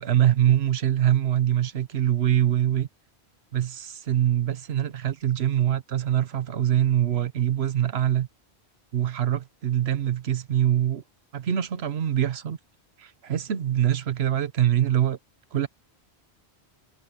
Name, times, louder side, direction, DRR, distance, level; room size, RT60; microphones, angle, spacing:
voice 1, 0.0-2.9 3.5-8.3 8.9-11.0 11.3-12.6 13.0-15.2 15.5-15.7, right 11 dB, 75° right, 1.1 m, -24 dB
omnidirectional pair, 1.1 m